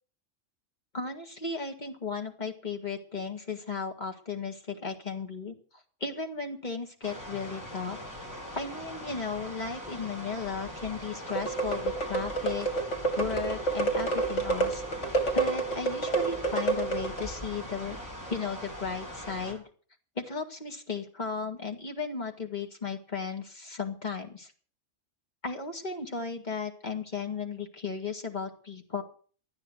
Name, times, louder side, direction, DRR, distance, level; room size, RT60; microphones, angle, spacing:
voice 1, 0.9-8.0 8.5-12.7 13.2-14.8 15.3-18.0 18.3-19.6 20.2-24.5 25.4-29.0, left 5 dB, 35° left, 3 dB, 2.2 m, -35 dB
sound 1, 7.0-19.5, equal, 15° left, 5.8 m, -41 dB
sound 2, 11.3-17.3, right 3 dB, 60° left, 2.9 m, -29 dB
13.0 x 9.4 x 7.7 m, 0.43 s
omnidirectional pair, 1.4 m